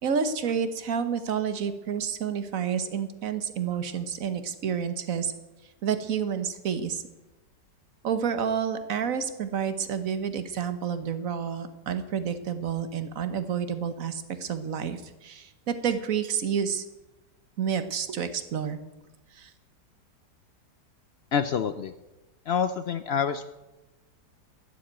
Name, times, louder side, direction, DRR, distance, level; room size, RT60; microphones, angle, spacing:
voice 1, 0.0-5.3 5.8-7.0 8.0-16.8 17.6-18.8 19.3-19.5, right 7 dB, 55° right, 11 dB, 1.4 m, -29 dB
voice 2, 21.3-21.9 22.5-23.5, left 7 dB, 85° left, 11 dB, 0.5 m, -27 dB
14.0 x 7.8 x 8.7 m, 1.0 s
omnidirectional pair, 1.8 m